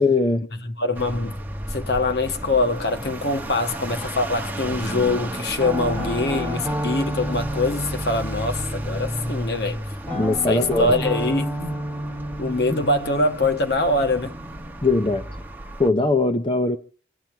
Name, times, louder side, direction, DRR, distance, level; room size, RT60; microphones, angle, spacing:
voice 1, 0.0-0.4 10.1-10.9 12.7-12.8 14.8-15.2 15.8-16.8, left 3 dB, 25° left, 0.7 m, -20 dB
voice 2, 0.5-1.4 1.7-9.8 10.5-11.8 12.4-14.3, left 2 dB, 60° left, 1.4 m, -24 dB
sound 1, 0.9-15.9, right 1 dB, 10° right, 1.1 m, -33 dB
Guitar, 5.6-9.4 10.0-14.8, equal, 10° left, 5.2 m, -31 dB
26.5 x 9.1 x 4.4 m
head